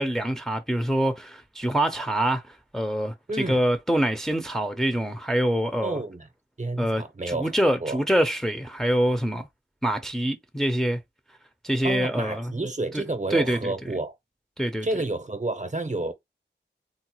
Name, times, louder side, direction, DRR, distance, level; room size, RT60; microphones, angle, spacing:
voice 1, 0.0-3.1 3.5-6.0 6.8-9.5 9.8-11.0 11.6-12.5 12.9-13.0 13.3-13.7 14.6-14.9, right 1 dB, ahead, 0.5 m, -25 dB
voice 2, 3.3-3.6 5.8-6.3 6.6-7.5 7.8-8.0 11.8-14.2 14.8-16.1, right 2 dB, 40° right, 0.7 m, -30 dB
3.8 x 2.0 x 2.9 m
wide cardioid pair, 50°, 19 cm